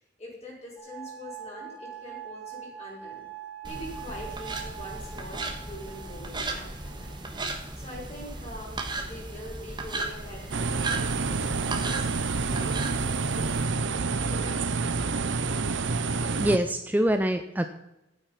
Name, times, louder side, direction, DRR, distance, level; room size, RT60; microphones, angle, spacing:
voice 1, 0.2-3.2 3.6-7.2 7.8-12.1 12.4-13.2 14.3-14.8, equal, 35° left, -4 dB, 5.8 m, -43 dB
sound 1, 0.8-7.7 8.5-9.1, right 8 dB, 15° left, 4.7 m, -44 dB
sound 2, 3.6-13.7, right 2 dB, 25° right, 1.5 m, -36 dB
sound 3, 10.5-16.6, right 4 dB, 85° right, 0.8 m, -28 dB
voice 2, 16.4-17.6, equal, 10° right, 8 dB, 0.5 m, -24 dB
12.0 x 9.2 x 5.8 m, 0.93 s
head